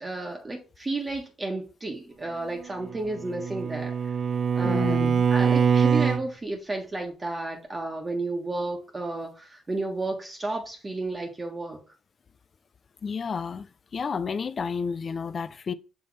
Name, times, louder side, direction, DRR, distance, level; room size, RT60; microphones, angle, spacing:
voice 1, 0.0-4.1 4.6-11.8, right 2 dB, 25° right, 1.3 m, -32 dB
Bowed string instrument, 2.9-6.3, right 6 dB, 45° right, 0.3 m, -23 dB
voice 2, 4.6-5.3 13.0-13.7 13.9-15.7, left 5 dB, 45° left, 0.4 m, -31 dB
6.1 x 3.4 x 4.7 m
cardioid pair, 90°, 0 cm